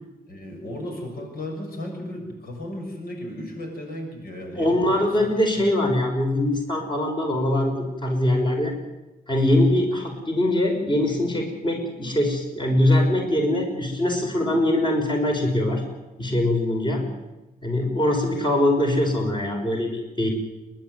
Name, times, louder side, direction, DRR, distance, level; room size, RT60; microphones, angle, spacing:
voice 1, 0.3-5.6, left 1 dB, 75° left, 2 dB, 6.8 m, -35 dB
voice 2, 4.5-8.7 9.3-15.8 16.2-17.0 17.6-20.3, left 1 dB, 30° left, 2 dB, 5.6 m, -22 dB
29.5 x 12.0 x 9.5 m, 1.0 s
cardioid pair, 95°, 16 cm